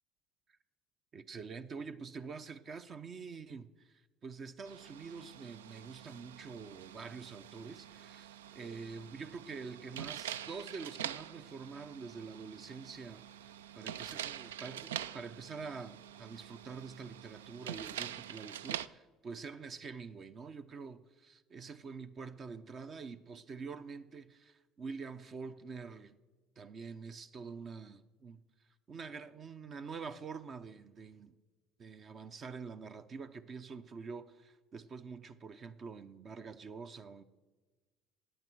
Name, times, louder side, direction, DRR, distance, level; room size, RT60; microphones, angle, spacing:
voice 1, 1.1-26.2 26.6-28.4 28.9-31.4 31.8-37.2, right 5 dB, 45° right, 0.7 m, -46 dB
sound 1, 4.6-18.9, right 10 dB, 85° right, 0.3 m, -45 dB
16.5 x 10.0 x 4.6 m
hypercardioid pair, 70°, 0 cm